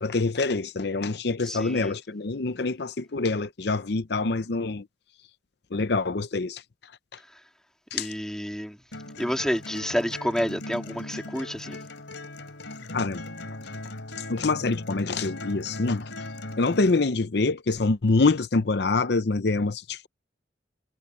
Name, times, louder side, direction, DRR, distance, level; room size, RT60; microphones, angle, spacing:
voice 1, 0.0-4.8 5.7-6.6 7.9-8.1 12.9-13.2 14.3-16.0 16.6-20.1, left 3 dB, 60° left, 0.7 m, -25 dB
voice 2, 1.4-1.9 7.9-8.8 9.2-11.8, equal, 5° left, 3.4 m, -29 dB
sound 1, 8.9-16.9, left 1 dB, 85° left, 3.5 m, -38 dB
head